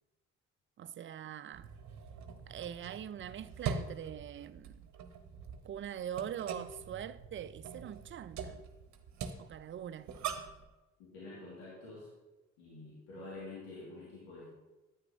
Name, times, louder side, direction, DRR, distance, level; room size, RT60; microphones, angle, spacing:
voice 1, 0.8-1.7 2.5-4.9 5.6-8.7 9.4-10.1, right 9 dB, 35° right, 0.5 m, -43 dB
sound 1, 1.5-10.6, right 6 dB, 60° right, 0.9 m, -43 dB
voice 2, 11.1-12.1 12.6-14.5, left 2 dB, 85° left, 2.1 m, -47 dB
9.6 x 8.7 x 2.7 m
hypercardioid pair, 45°, 33 cm